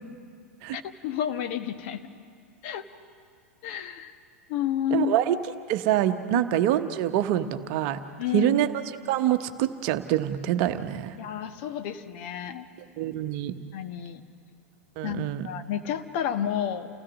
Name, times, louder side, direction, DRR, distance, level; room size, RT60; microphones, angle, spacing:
voice 1, 0.7-2.0 2.6-2.8 3.6-4.2 4.5-5.2 6.3-6.4 8.2-8.5 11.2-12.7 13.7-14.2 15.0-16.9, left 10 dB, 50° left, 8 dB, 1.3 m, -30 dB
voice 2, 4.9-5.4 5.7-8.0 8.3-8.8 9.1-11.2 13.0-13.5 15.0-15.5, right 12 dB, 45° right, 9 dB, 1.0 m, -25 dB
29.0 x 16.5 x 6.3 m, 2.3 s
figure-of-eight pair, 95°, 8 cm